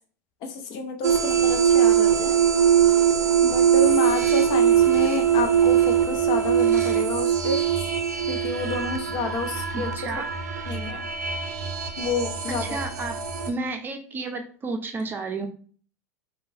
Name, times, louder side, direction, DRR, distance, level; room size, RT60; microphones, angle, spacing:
voice 1, 0.4-2.4 3.4-7.6 8.3-9.9 10.7-11.1 12.0-12.8, left 4 dB, 50° left, 5 dB, 0.6 m, -30 dB
sound 1, 1.0-13.5, right 8 dB, 80° right, 0.4 m, -21 dB
voice 2, 9.7-10.3 12.6-13.2 13.5-15.5, right 3 dB, 25° right, 4 dB, 0.5 m, -31 dB
3.0 x 2.2 x 2.6 m, 0.43 s
hypercardioid pair, 85°, 9 cm